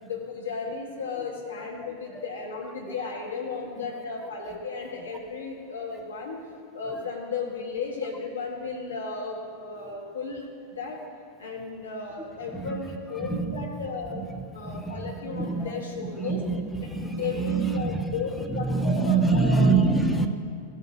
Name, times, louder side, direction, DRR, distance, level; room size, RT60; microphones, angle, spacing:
voice 1, 0.0-6.4 6.7-10.4 10.8-11.0 11.4-14.2 14.5-16.4 17.1-19.8, left 4 dB, 70° left, -1 dB, 1.7 m, -34 dB
voice 2, 13.2-13.7 14.1-14.2 14.6-15.7 16.0-20.3, right 4 dB, ahead, 4 dB, 0.6 m, -26 dB
15.0 x 8.2 x 2.9 m, 2.4 s
figure-of-eight pair, 90°, 0 cm